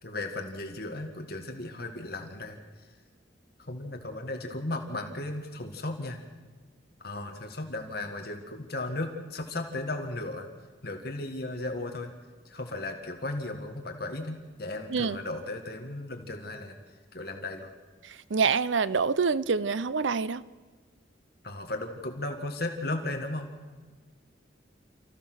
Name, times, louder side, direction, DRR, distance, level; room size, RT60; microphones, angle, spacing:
voice 1, 0.0-2.9 3.6-6.2 7.0-10.5 10.8-12.1 12.5-16.8 17.1-17.7 21.4-23.5, left 2 dB, 55° left, 4 dB, 2.0 m, -35 dB
voice 2, 18.0-20.4, right 5 dB, 80° right, 16 dB, 0.7 m, -26 dB
28.5 x 15.0 x 6.4 m, 1.4 s
head